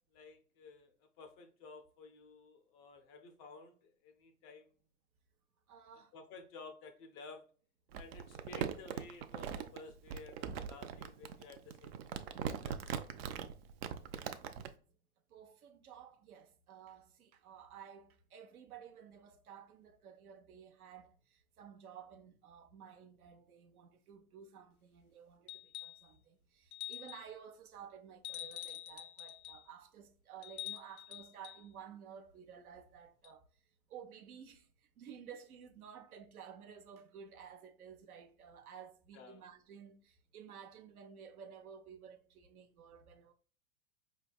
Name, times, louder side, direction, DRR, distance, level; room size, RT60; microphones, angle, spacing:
voice 1, 0.1-4.7 6.1-7.4 7.9-13.1 39.1-39.4, left 4 dB, 25° left, 0.4 m, -54 dB
voice 2, 5.7-6.1 14.4-14.6 15.3-33.4 33.9-34.7 35.0-43.3, right 7 dB, 70° right, 0.8 m, -54 dB
Crumpling crinkling, 7.9-14.7, right 8 dB, 45° right, 0.5 m, -41 dB
sound 1, 25.5-26.1 26.7-27.3 28.2-29.6 30.4-31.6 33.2-33.3, left 14 dB, 75° left, 0.6 m, -46 dB
4.7 x 3.3 x 2.3 m
hypercardioid pair, 110°, 44 cm